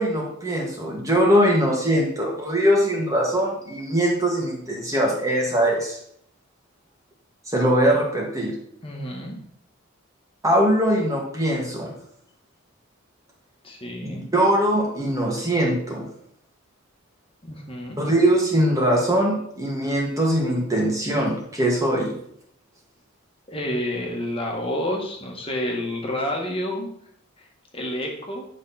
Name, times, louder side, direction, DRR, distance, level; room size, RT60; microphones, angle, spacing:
voice 1, 0.0-6.0 7.5-8.5 10.4-11.9 14.1-16.1 18.0-22.1, right 1 dB, 15° right, -2 dB, 1.9 m, -21 dB
voice 2, 8.8-9.4 13.6-14.2 17.4-18.0 23.5-26.9 27.4-27.5 27.7-28.5, left 1 dB, 25° left, 0 dB, 1.9 m, -29 dB
10.5 x 5.9 x 4.4 m, 0.70 s
head